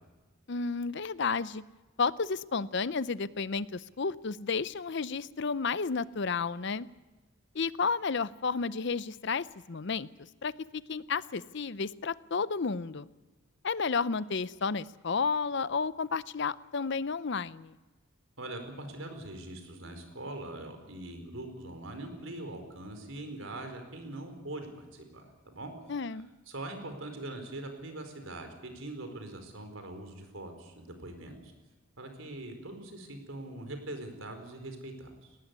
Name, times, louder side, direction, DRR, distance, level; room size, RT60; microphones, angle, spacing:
voice 1, 0.5-1.6 2.0-6.9 7.5-10.1 10.4-10.5 10.9-13.1 13.6-17.8 25.9-26.3, left 5 dB, 55° left, 17 dB, 0.6 m, -32 dB
voice 2, 18.4-25.7 26.0-31.5 32.0-35.4, right 2 dB, 70° right, 6 dB, 4.6 m, -42 dB
19.0 x 18.0 x 9.7 m, 1.2 s
head